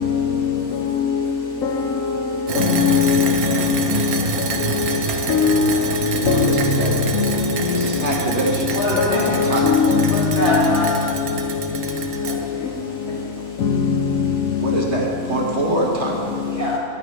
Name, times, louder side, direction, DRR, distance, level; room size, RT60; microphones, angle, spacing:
voice 1, 2.5-3.3 3.9-4.0 5.3-5.6 6.3-7.3 9.0-10.6 13.6-13.7, left 6 dB, 70° left, 1.2 m, -18 dB
sound 1, 2.5-12.4, right 6 dB, 80° right, 1.3 m, -27 dB
voice 2, 6.1-7.0 7.7-8.7 9.1-9.7 14.6-16.3, right 1 dB, 50° right, 1.6 m, -24 dB
voice 3, 8.7-9.3 10.1-11.0 12.2-13.4 16.4-16.8, left 1 dB, 50° left, 3.6 m, -25 dB
14.5 x 11.0 x 3.2 m
omnidirectional pair, 1.5 m